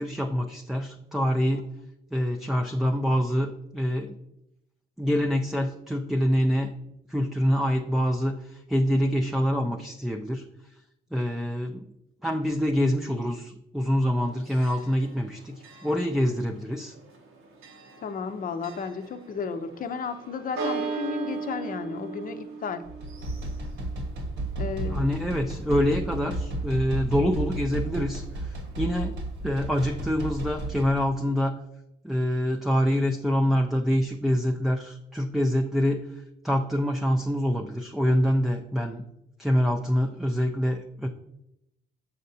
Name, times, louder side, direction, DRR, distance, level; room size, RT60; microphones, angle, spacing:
voice 1, 0.0-1.7 2.1-4.2 5.0-6.7 7.1-10.4 11.1-11.9 12.2-16.9 24.8-29.1 29.4-31.6 32.0-36.0 36.4-39.1 39.4-41.1, equal, ahead, 2 dB, 0.4 m, -25 dB
Church bell, 14.0-29.1, right 4 dB, 90° right, 1.2 m, -40 dB
voice 2, 18.0-22.8 24.6-25.3, left 5 dB, 45° left, 9 dB, 0.6 m, -33 dB
sound 1, 22.8-31.0, right 2 dB, 75° right, 1.3 m, -33 dB
6.4 x 5.7 x 2.7 m, 0.85 s
cardioid pair, 90°, 20 cm